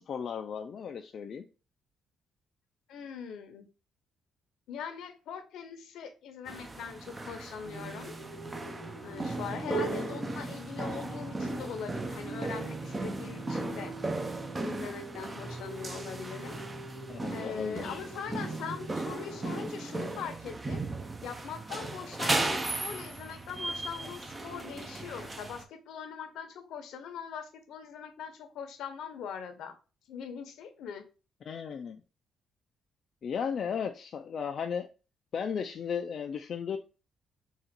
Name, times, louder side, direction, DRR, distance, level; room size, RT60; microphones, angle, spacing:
voice 1, 0.0-1.4 9.7-10.1 17.1-18.0 31.5-32.0 33.2-34.9 35.3-36.8, left 7 dB, 55° left, 0.4 m, -35 dB
voice 2, 2.9-3.7 4.7-8.1 9.0-14.0 14.6-16.6 17.3-20.8 21.2-29.7 30.1-31.0, left 7 dB, 80° left, 0.8 m, -41 dB
sound 1, 6.5-25.6, right 2 dB, 25° right, 0.6 m, -36 dB
sound 2, 7.6-19.6, right 2 dB, 50° right, 1.7 m, -44 dB
3.8 x 2.4 x 4.4 m
cardioid pair, 90°, 0 cm